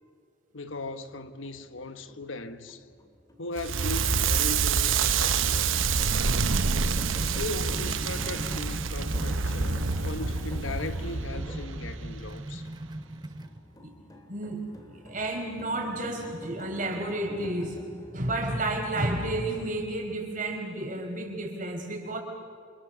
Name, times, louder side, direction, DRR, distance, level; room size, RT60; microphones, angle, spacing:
voice 1, 0.5-2.9 3.4-5.8 7.2-12.7, left 2 dB, 85° left, 1.2 m, -38 dB
sound 1, 0.6-20.4, left 1 dB, 20° left, 2.1 m, -47 dB
Crackle, 3.6-12.5, right 5 dB, 90° right, 1.0 m, -27 dB
sound 2, 6.4-13.6, right 1 dB, 20° right, 0.7 m, -41 dB
voice 2, 14.3-17.8 18.1-22.2, right 1 dB, 40° right, 4.5 m, -31 dB
28.5 x 27.0 x 7.0 m
head